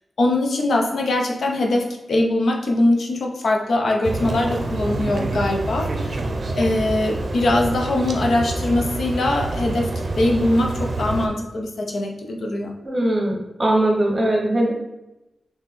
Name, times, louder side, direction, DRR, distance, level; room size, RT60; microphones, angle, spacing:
voice 1, 0.2-6.2 6.5-12.7, left 1 dB, 80° left, 1 dB, 0.7 m, -22 dB
sound 1, 4.0-11.3, right 2 dB, 55° right, 0.6 m, -27 dB
voice 2, 12.8-14.7, right 1 dB, 30° right, 0 dB, 1.1 m, -20 dB
4.1 x 3.1 x 3.7 m, 0.94 s
wide cardioid pair, 115°, 0 cm